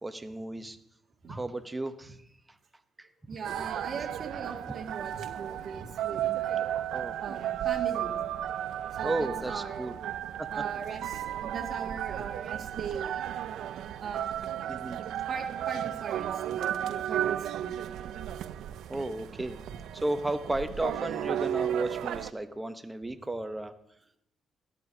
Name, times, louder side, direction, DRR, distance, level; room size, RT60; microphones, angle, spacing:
voice 1, 0.0-0.8 1.3-2.2 3.0-3.1 6.9-7.1 9.0-9.9 10.4-10.5 14.7-15.0 18.9-19.6 19.9-23.7, right 2 dB, 15° right, 10 dB, 0.8 m, -34 dB
voice 2, 3.3-6.7 7.2-8.2 9.0-9.9 10.5-13.3 14.0-14.9 15.3-17.7, right 5 dB, 55° right, 1 dB, 1.9 m, -39 dB
sound 1, 3.4-22.3, right 11 dB, 80° right, 0.3 m, -34 dB
13.0 x 12.0 x 2.7 m, 0.79 s
cardioid pair, 90°, 0 cm